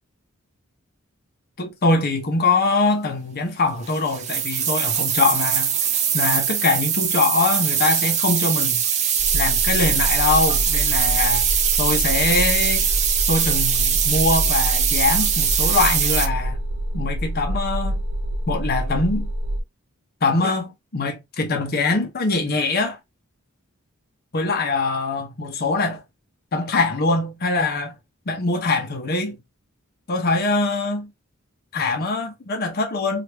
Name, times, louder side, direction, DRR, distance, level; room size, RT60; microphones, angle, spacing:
voice 1, 1.6-5.7 6.1-8.8 9.3-11.5 11.8-12.9 13.3-16.6 16.9-18.0 18.5-19.3 20.2-23.0 24.3-26.0 26.5-27.9 28.3-29.4 30.1-31.1 31.7-33.2, left 3 dB, 45° left, 0.7 m, -23 dB
sound 1, 3.8-16.3, right 8 dB, 35° right, 0.5 m, -22 dB
sound 2, 9.2-19.6, equal, 75° right, 0.7 m, -26 dB
3.3 x 2.4 x 2.8 m
head